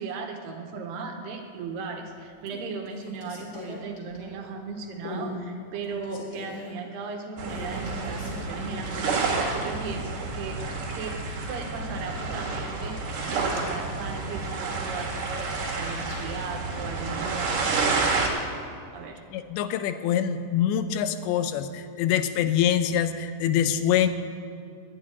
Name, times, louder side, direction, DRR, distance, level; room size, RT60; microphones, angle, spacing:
voice 1, 0.0-11.2 11.5-13.0 13.3-18.3 18.9-19.2, right 4 dB, 75° right, 4 dB, 2.9 m, -37 dB
sound 1, 1.7-2.1 2.4-4.6 5.0-5.4 5.7-6.8 7.4-9.2 9.5-9.6 13.1-13.8 14.7-16.2, left 1 dB, 45° left, 4.1 m, -41 dB
sound 2, 7.4-18.3, right 3 dB, 55° right, 3.1 m, -29 dB
voice 2, 19.3-24.1, left 9 dB, 85° left, 10 dB, 2.9 m, -25 dB
11.0 x 8.1 x 9.5 m, 2.4 s
omnidirectional pair, 5.0 m